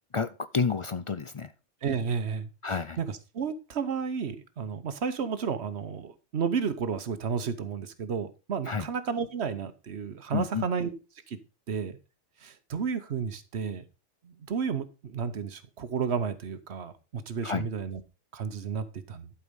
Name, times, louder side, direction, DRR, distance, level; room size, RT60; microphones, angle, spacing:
voice 1, 0.1-1.5 2.6-3.0 8.7-8.9 10.3-10.7 17.4-17.7, left 5 dB, 45° left, 12 dB, 0.4 m, -30 dB
voice 2, 1.8-10.9 11.3-11.4 11.7-12.0 12.4-13.8 14.2-18.0 18.3-19.3, right 6 dB, 65° right, 12 dB, 1.2 m, -32 dB
11.5 x 4.8 x 5.2 m, 0.31 s
omnidirectional pair, 1.2 m